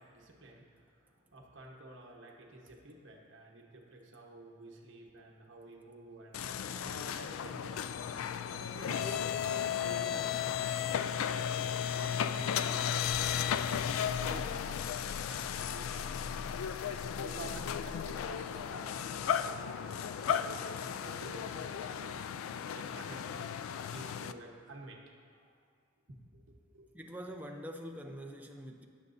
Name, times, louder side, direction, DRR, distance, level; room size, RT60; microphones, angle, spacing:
voice 1, 0.0-8.0 8.5-11.5 11.9-16.2 16.8-22.2 22.7-23.5 23.8-25.4 26.1-26.9, right 2 dB, 60° right, 0 dB, 1.2 m, -50 dB
sound 1, 6.3-24.3, left 8 dB, 85° left, 0.3 m, -35 dB
voice 2, 26.9-28.9, equal, 10° right, 3 dB, 0.5 m, -44 dB
18.0 x 6.7 x 2.7 m, 2.2 s
head